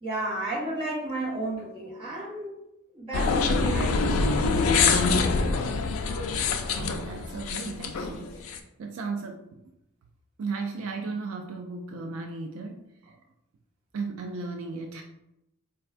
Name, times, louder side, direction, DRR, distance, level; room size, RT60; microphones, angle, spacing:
voice 1, 0.0-2.5 2.9-4.2 4.5-4.8, right 2 dB, 25° right, -8 dB, 1.2 m, -33 dB
sound 1, 3.1-8.6, left 4 dB, 85° left, 0.4 m, -25 dB
voice 2, 6.6-9.6 10.4-13.2 13.9-15.0, right 4 dB, 75° right, 4 dB, 0.3 m, -36 dB
4.2 x 2.3 x 2.4 m, 0.85 s
head